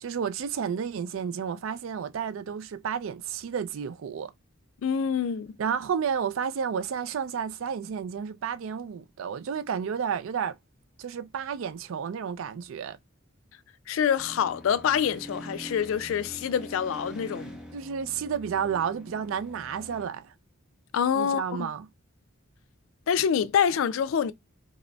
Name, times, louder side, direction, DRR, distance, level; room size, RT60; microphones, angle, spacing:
voice 1, 0.0-4.3 5.6-10.6 11.0-13.0 17.7-20.3 21.1-21.9, right 7 dB, 70° right, 0.3 m, -31 dB
voice 2, 4.8-5.5 13.9-17.6 20.9-21.7 23.1-24.3, left 7 dB, 75° left, 0.3 m, -26 dB
sound 1, 14.2-20.1, equal, 5° right, 0.8 m, -44 dB
4.9 x 2.0 x 2.2 m
head